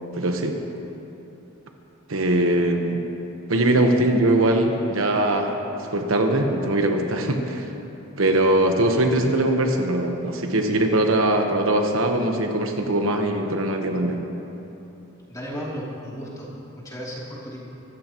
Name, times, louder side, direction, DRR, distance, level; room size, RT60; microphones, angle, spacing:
voice 1, 0.1-0.6 2.1-3.0 3.5-5.6 5.9-7.7 8.2-14.2, right 1 dB, 70° right, 3 dB, 1.1 m, -21 dB
voice 2, 15.3-17.6, equal, 15° left, -6 dB, 2.9 m, -34 dB
24.0 x 14.0 x 3.0 m, 3.0 s
head